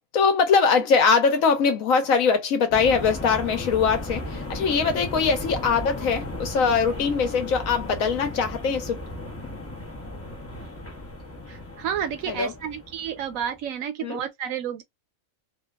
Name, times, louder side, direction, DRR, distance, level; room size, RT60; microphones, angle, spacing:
voice 1, 0.1-9.0 12.3-12.5 14.0-14.2, left 5 dB, 75° left, 1.1 m, -22 dB
sound 1, 2.7-13.6, left 1 dB, 20° left, 0.4 m, -35 dB
voice 2, 11.5-14.8, right 8 dB, 80° right, 1.1 m, -31 dB
2.8 x 2.0 x 2.3 m
omnidirectional pair, 1.4 m